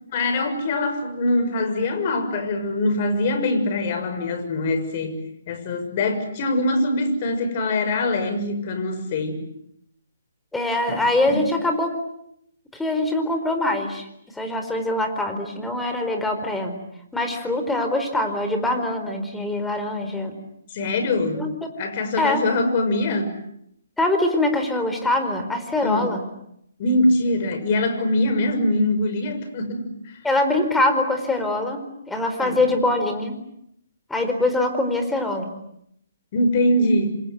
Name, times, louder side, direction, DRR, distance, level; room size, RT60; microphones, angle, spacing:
voice 1, 0.1-5.2 5.5-9.4 10.9-11.0 11.3-11.4 20.7-21.5 21.8-23.4 25.8-26.1 26.8-30.2 32.4-32.6 36.3-37.2, left 1 dB, 40° left, 8 dB, 6.4 m, -23 dB
voice 2, 10.5-11.9 12.7-14.1 14.4-16.7 17.1-20.4 21.4-21.5 22.2-22.4 24.0-26.2 30.2-31.8 32.1-33.3 34.1-35.5, left 2 dB, 5° left, 6 dB, 4.5 m, -23 dB
27.5 x 26.5 x 8.1 m, 0.76 s
figure-of-eight pair, 140°, 0 cm